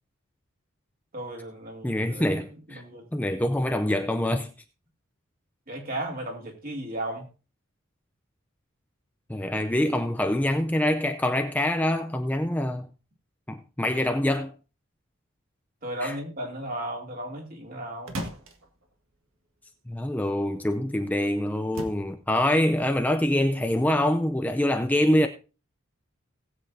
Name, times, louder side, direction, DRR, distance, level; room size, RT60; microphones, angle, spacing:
voice 1, 1.1-2.4 2.7-3.0 5.7-7.2 15.8-18.1, right 1 dB, 45° right, 2.8 m, -35 dB
voice 2, 1.8-2.8 3.1-4.5 9.3-12.9 13.5-14.5 16.0-16.2 19.9-25.3, left 1 dB, 10° left, 0.5 m, -25 dB
sound 1, 17.7-20.3 20.7-21.2 21.5-22.6 22.9-24.0, right 1 dB, 75° right, 1.7 m, -40 dB
19.5 x 7.9 x 2.7 m
head